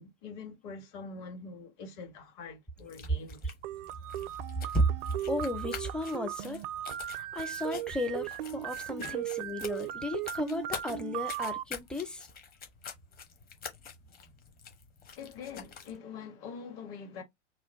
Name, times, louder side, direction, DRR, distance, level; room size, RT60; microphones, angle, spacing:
voice 1, 0.0-3.5 9.0-9.2 15.1-17.2, left 5 dB, 45° left, 1.7 m, -44 dB
sound 1, 2.8-16.0, left 7 dB, 25° left, 1.0 m, -47 dB
sound 2, 3.6-11.6, right 13 dB, 50° right, 0.4 m, -37 dB
voice 2, 5.3-6.6 7.1-12.3, equal, ahead, 0.6 m, -33 dB
3.0 x 2.2 x 4.1 m
hypercardioid pair, 100°, 36 cm